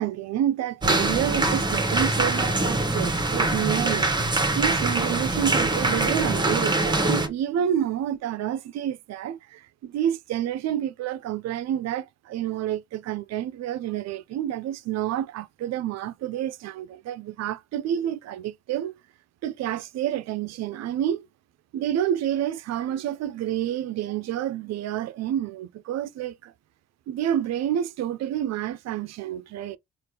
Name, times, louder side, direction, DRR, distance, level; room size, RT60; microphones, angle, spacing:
voice 1, 0.0-19.0 19.4-21.3 21.7-26.5 27.1-29.8, right 11 dB, 60° right, 0.4 m, -29 dB
sound 1, 0.8-7.3, right 2 dB, 15° right, 0.9 m, -23 dB
3.3 x 2.4 x 2.8 m
cardioid pair, 90°, 30 cm